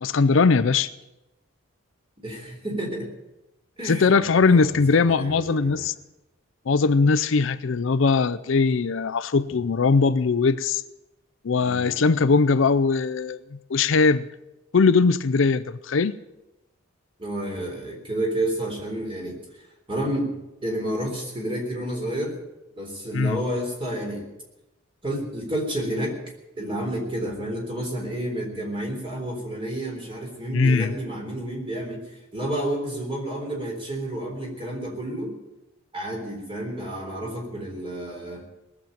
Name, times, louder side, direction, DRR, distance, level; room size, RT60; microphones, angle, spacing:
voice 1, 0.0-0.9 3.8-5.9 6.7-10.8 11.4-13.4 13.7-14.3 14.7-16.2 23.1-23.4 30.5-30.9, left 4 dB, 60° left, 13 dB, 0.5 m, -20 dB
voice 2, 2.2-3.1 3.8-5.9 11.6-11.9 17.2-19.4 19.9-20.3 20.6-22.3 22.8-24.2 25.0-26.1 26.6-32.0 32.3-35.4 35.9-38.4, right 1 dB, 25° right, 0 dB, 3.7 m, -30 dB
18.5 x 7.3 x 9.1 m, 0.96 s
head